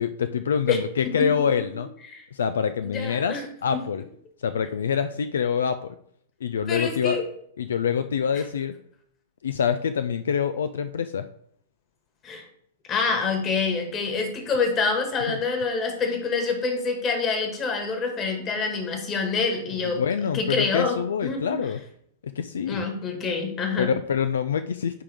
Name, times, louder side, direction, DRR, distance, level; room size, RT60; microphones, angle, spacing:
voice 1, 0.0-1.9 2.3-4.0 4.4-6.0 6.4-7.2 7.6-8.7 9.4-11.3 15.3-15.4 19.8-21.8 22.2-22.9 23.8-25.0, left 7 dB, 75° left, 11 dB, 0.4 m, -26 dB
voice 2, 2.8-3.4 6.7-7.2 12.2-12.4 12.9-20.0 20.3-21.0 21.2-21.4 22.7-23.9, left 4 dB, 30° left, 4 dB, 1.8 m, -26 dB
10.0 x 3.6 x 3.5 m, 0.68 s
hypercardioid pair, 105°, 0 cm